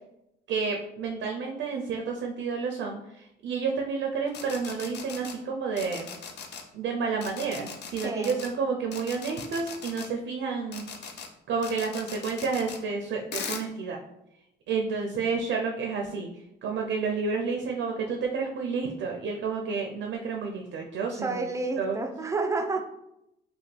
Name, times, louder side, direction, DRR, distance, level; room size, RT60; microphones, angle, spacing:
voice 1, 0.5-6.1 6.7-10.9 11.5-14.0 14.7-16.3 16.6-21.4 21.8-22.0, right 5 dB, 70° right, 2 dB, 0.5 m, -30 dB
sound 1, 4.3-5.3 5.8-6.6 7.2-8.5 8.9-10.1 10.7-11.3 11.6-12.8 13.3-13.6, left 6 dB, 60° left, 0.5 m, -39 dB
voice 2, 8.0-8.4 21.1-22.8, right 3 dB, 15° right, 4 dB, 0.5 m, -30 dB
3.3 x 2.2 x 3.2 m, 0.84 s
cardioid pair, 90°, 20 cm